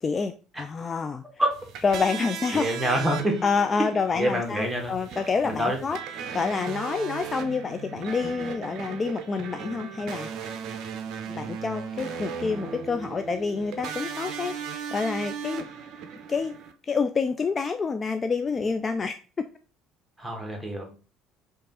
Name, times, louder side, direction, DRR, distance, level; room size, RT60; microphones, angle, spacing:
voice 1, 0.0-1.2 1.8-2.7 3.4-6.0 6.3-10.3 11.3-15.6 16.3-16.5 16.9-19.1, left 5 dB, 30° left, 8 dB, 0.3 m, -28 dB
sound 1, 1.5-16.7, right 7 dB, 50° right, 0.6 m, -37 dB
voice 2, 2.5-3.4 4.1-4.9 5.4-5.8 20.2-20.9, right 1 dB, 5° right, 2 dB, 1.5 m, -26 dB
5.2 x 2.5 x 4.0 m, 0.36 s
figure-of-eight pair, 55°, 0 cm